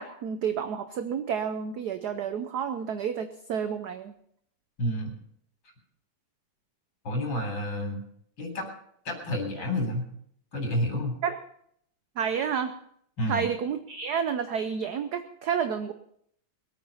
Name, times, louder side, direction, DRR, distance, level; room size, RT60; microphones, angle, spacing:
voice 1, 0.0-4.1 11.2-11.4 12.2-12.7 13.3-15.9, right 7 dB, 60° right, 10 dB, 1.1 m, -30 dB
voice 2, 4.8-5.1 7.0-8.0 8.4-8.7 9.0-10.1 10.5-11.2 13.2-13.4, left 1 dB, 60° left, 3 dB, 4.3 m, -29 dB
21.5 x 8.9 x 5.5 m, 0.68 s
omnidirectional pair, 2.3 m